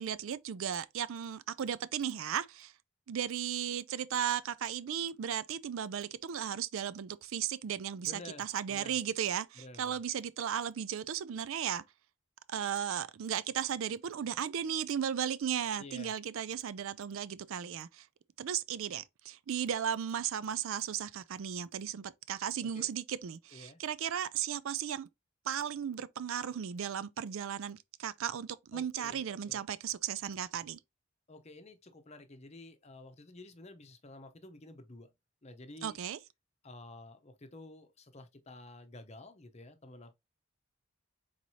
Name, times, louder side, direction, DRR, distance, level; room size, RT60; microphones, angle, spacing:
voice 1, 0.0-2.7 3.1-11.8 12.5-18.1 18.4-25.1 25.5-30.8 35.8-36.2, right 9 dB, 65° right, 0.4 m, -35 dB
voice 2, 8.0-9.0 9.6-10.0 15.8-16.1 22.6-22.9 23.5-23.8 28.7-29.6 31.3-35.1 35.4-36.0 36.6-40.1, left 2 dB, 30° left, 0.7 m, -51 dB
4.6 x 4.1 x 2.7 m
head